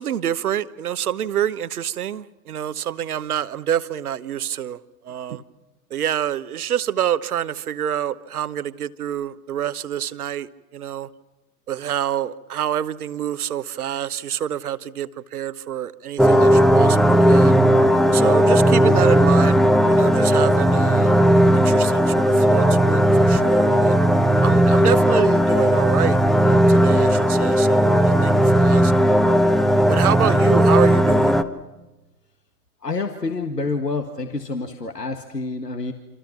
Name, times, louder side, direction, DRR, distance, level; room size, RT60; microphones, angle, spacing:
voice 1, 0.0-4.8 5.0-5.4 5.9-11.1 11.7-17.6 18.1-24.0 24.4-26.2 26.4-28.9 29.9-31.4, right 10 dB, 70° right, 15 dB, 1.2 m, -27 dB
sound 1, 16.2-31.4, equal, ahead, 1.0 m, -16 dB
voice 2, 32.8-35.9, left 3 dB, 90° left, 6 dB, 1.8 m, -27 dB
28.0 x 27.5 x 5.9 m, 1.1 s
figure-of-eight pair, 95°, 47 cm